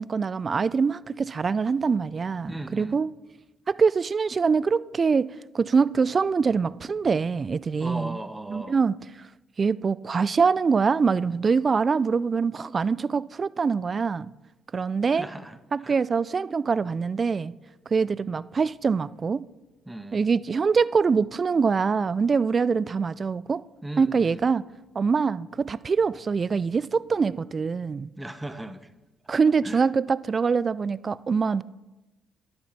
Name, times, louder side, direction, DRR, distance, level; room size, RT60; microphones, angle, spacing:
voice 1, 0.0-3.1 3.7-5.3 5.5-8.2 8.5-9.3 9.6-14.3 14.7-15.3 15.7-17.5 17.9-19.4 20.1-23.6 24.0-24.6 25.0-28.1 29.3-31.6, right 5 dB, 40° right, 0.3 m, -24 dB
voice 2, 2.5-3.0 7.8-8.8 15.1-15.6 15.8-15.9 19.9-20.2 23.8-24.4 28.2-28.9 29.6-29.9, right 1 dB, 10° right, 0.8 m, -37 dB
10.5 x 6.7 x 4.2 m
hypercardioid pair, 55°, 0 cm